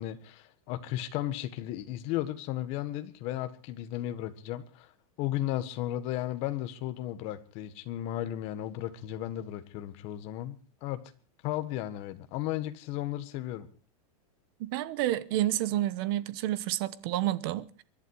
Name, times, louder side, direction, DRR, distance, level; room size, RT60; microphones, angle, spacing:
voice 1, 0.0-4.9 5.2-11.0 11.4-13.7, left 13 dB, 35° left, 1.6 m, -35 dB
voice 2, 14.7-17.8, right 14 dB, 40° right, 1.1 m, -29 dB
24.0 x 11.5 x 4.8 m
supercardioid pair, 170°, 18 cm